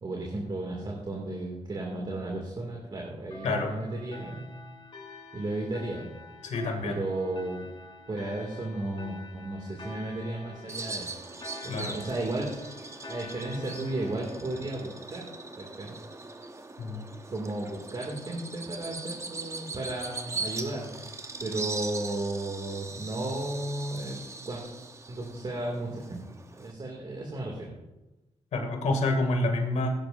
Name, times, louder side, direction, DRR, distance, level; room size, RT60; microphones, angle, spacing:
voice 1, 0.0-4.5 5.3-6.1 6.8-7.7 8.1-11.2 11.6-12.5 13.1-15.2 15.5-15.9 17.3-21.0 21.4-24.2 24.5-24.6 25.1-26.2 26.6-27.7, right 2 dB, 40° right, -1 dB, 2.3 m, -34 dB
sound 1, 3.3-16.4, left 2 dB, 45° left, 3.7 m, -48 dB
voice 2, 6.4-7.0 11.7-12.0 16.8-17.0 28.5-29.9, left 2 dB, 75° left, 3 dB, 2.4 m, -28 dB
Bird vocalization bird call bird song, 10.7-26.7, right 3 dB, 25° right, 0.9 m, -40 dB
17.0 x 10.5 x 2.6 m, 1.0 s
cardioid pair, 80°, 12 cm